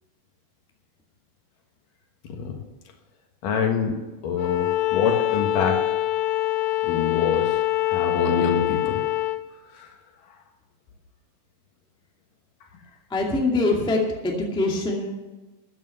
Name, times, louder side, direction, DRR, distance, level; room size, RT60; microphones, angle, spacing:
voice 1, 2.2-2.6 3.4-4.0 4.2-5.8 6.8-9.0 9.7-9.9, left 6 dB, 70° left, 3 dB, 3.1 m, -26 dB
Bowed string instrument, 4.4-9.4, left 15 dB, 90° left, 2.5 m, -24 dB
voice 2, 13.1-15.2, left 2 dB, ahead, -1 dB, 1.4 m, -24 dB
13.5 x 10.0 x 5.8 m, 1.2 s
omnidirectional pair, 4.0 m